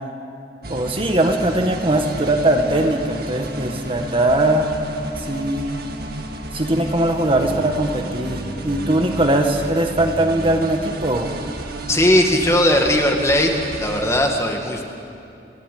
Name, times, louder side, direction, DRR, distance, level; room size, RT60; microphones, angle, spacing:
sound 1, 0.6-14.2, right 1 dB, 55° right, 2.0 m, -32 dB
voice 1, 0.7-4.7 5.2-5.7 6.5-11.3, right 1 dB, 30° right, 3 dB, 1.8 m, -20 dB
voice 2, 11.9-13.5 13.8-14.8, left 1 dB, 15° left, 2 dB, 2.1 m, -18 dB
28.5 x 16.0 x 9.5 m, 2.6 s
head